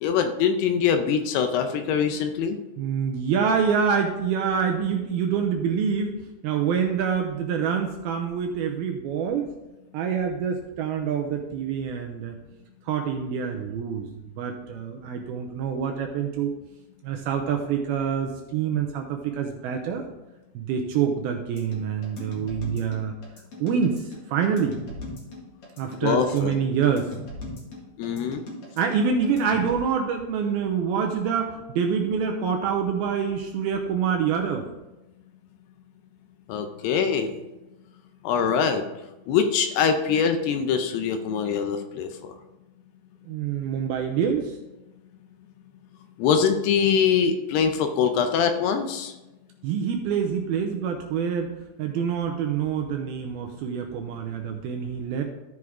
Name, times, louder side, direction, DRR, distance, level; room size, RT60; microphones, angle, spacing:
voice 1, 0.0-2.6 26.0-26.5 28.0-28.4 36.5-37.4 38.2-38.8 39.3-42.3 46.2-49.1, left 7 dB, 80° left, 7 dB, 2.6 m, -23 dB
voice 2, 2.8-6.2 6.4-9.5 9.9-12.3 12.9-14.1 14.4-16.5 17.0-20.0 20.6-23.1 23.6-24.8 25.8-27.1 28.8-34.6 43.3-44.5 49.6-51.5 51.8-55.2, right 7 dB, 80° right, 3 dB, 2.3 m, -26 dB
sound 1, 21.6-29.8, left 1 dB, 45° left, 2.2 m, -39 dB
14.0 x 4.7 x 3.6 m, 1.0 s
omnidirectional pair, 5.0 m